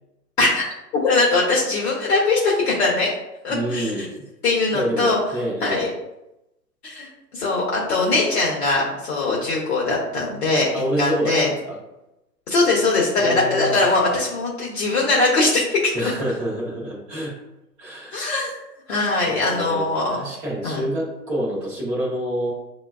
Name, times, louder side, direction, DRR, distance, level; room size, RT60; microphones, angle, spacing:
voice 1, 0.9-3.1 3.4-4.1 4.4-5.2 5.6-5.9 6.8-10.7 11.0-11.5 12.5-15.9 18.1-18.5 18.9-20.2 20.6-20.8, left 3 dB, 40° left, -3 dB, 0.8 m, -21 dB
voice 2, 3.5-4.2 4.7-5.9 10.7-11.8 13.2-13.8 15.9-17.4 17.8-18.3 19.2-22.5, equal, 10° right, -6 dB, 0.5 m, -27 dB
6.3 x 2.2 x 2.3 m, 0.91 s
hypercardioid pair, 130°, 49 cm